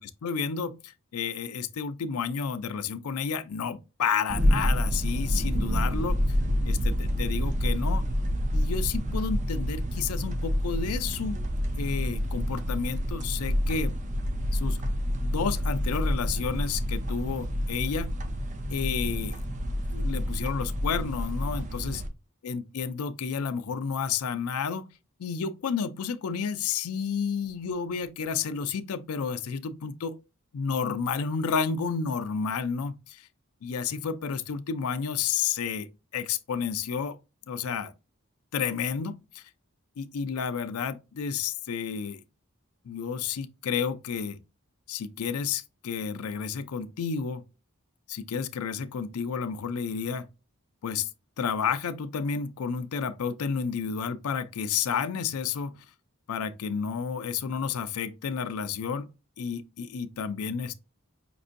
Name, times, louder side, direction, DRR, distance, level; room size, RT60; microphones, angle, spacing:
voice 1, 0.2-6.2 6.7-8.1 8.5-11.4 11.8-13.9 14.5-14.8 15.2-18.1 18.7-19.4 19.9-22.0 22.4-24.9 25.2-30.2 30.5-33.2 33.6-35.9 36.1-37.2 37.5-37.9 38.5-39.4 40.0-42.2 42.8-44.4 44.9-47.4 48.1-50.3 50.8-51.1 51.4-55.8 56.3-60.7, left 6 dB, 85° left, 0.4 m, -31 dB
sound 1, 4.3-22.1, equal, 35° right, 0.5 m, -28 dB
5.3 x 2.5 x 2.5 m
head